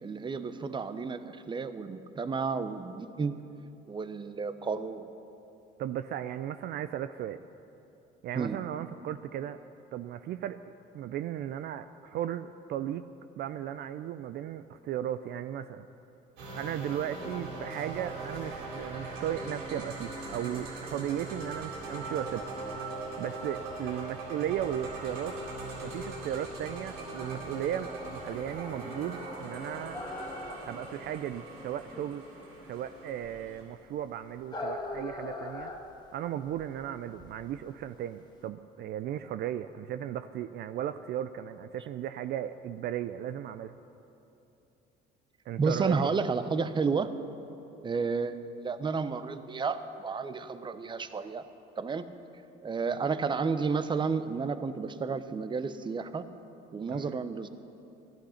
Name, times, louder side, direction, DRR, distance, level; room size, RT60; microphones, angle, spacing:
voice 1, 0.0-3.4 3.9-5.1 8.3-8.6 45.6-47.1 47.8-51.5 51.8-52.1 52.6-56.3 56.7-57.5, right 5 dB, 25° right, 11 dB, 0.7 m, -31 dB
voice 2, 5.8-7.4 8.2-9.6 9.9-13.0 13.4-15.9 16.5-22.5 23.2-25.4 25.8-30.0 30.6-32.2 32.7-35.7 36.1-43.8 45.5-46.0 56.9-57.2, right 11 dB, 60° right, 11 dB, 0.4 m, -36 dB
sound 1, 16.4-33.6, right 2 dB, 80° right, 3.8 m, -40 dB
sound 2, 29.9-38.4, left 2 dB, 20° left, 1.7 m, -41 dB
14.5 x 11.5 x 5.7 m, 2.9 s
supercardioid pair, 95°, 19 cm